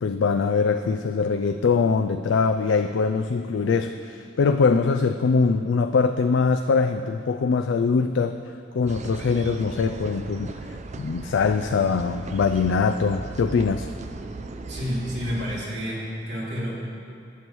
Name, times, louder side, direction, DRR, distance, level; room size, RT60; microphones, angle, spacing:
voice 1, 0.0-8.4 8.7-10.5 11.0-13.9, left 5 dB, 85° left, 7 dB, 0.4 m, -22 dB
sound 1, 8.9-15.6, right 3 dB, 40° right, 0.5 m, -37 dB
voice 2, 14.7-16.7, equal, 70° right, -6 dB, 2.6 m, -30 dB
20.5 x 7.1 x 3.1 m, 2.6 s
head